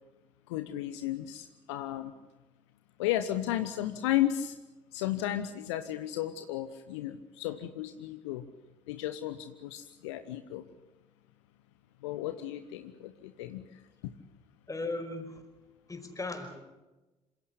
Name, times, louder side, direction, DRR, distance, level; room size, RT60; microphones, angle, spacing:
voice 1, 0.5-2.1 3.0-4.6 4.9-8.4 8.9-10.6 12.0-13.6, left 13 dB, 70° left, 10 dB, 1.0 m, -34 dB
voice 2, 14.7-15.4 15.9-16.6, left 2 dB, 20° left, 5 dB, 5.4 m, -37 dB
27.0 x 16.5 x 8.4 m, 1.1 s
figure-of-eight pair, 45°, 15 cm